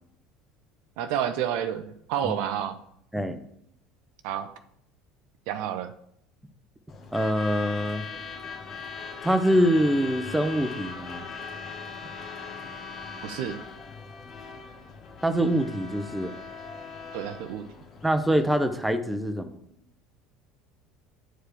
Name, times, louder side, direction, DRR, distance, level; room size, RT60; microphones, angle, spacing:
voice 1, 1.0-2.8 4.2-4.5 5.5-5.9 13.2-13.6 17.1-17.7, right 10 dB, 60° right, 10 dB, 0.5 m, -29 dB
Truck / Alarm, 6.9-18.8, left 5 dB, 40° left, 1.2 m, -40 dB
voice 2, 7.1-8.0 9.2-11.3 15.2-16.3 18.0-19.6, equal, 5° right, 8 dB, 0.9 m, -24 dB
10.0 x 4.8 x 4.8 m, 0.71 s
figure-of-eight pair, 65°, 0 cm